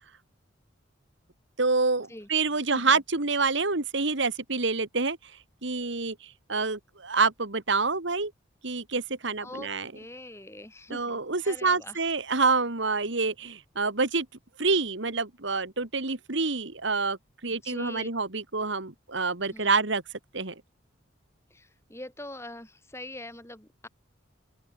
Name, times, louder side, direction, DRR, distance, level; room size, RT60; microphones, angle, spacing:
voice 1, 1.6-5.3 5.6-8.3 8.6-9.9 10.9-14.3 14.6-20.0 20.3-20.6, right 4 dB, 65° right, 2.0 m, -27 dB
voice 2, 9.4-12.0 17.5-18.1 19.5-19.8 21.5-23.9, left 1 dB, 15° left, 4.4 m, -43 dB
open air
head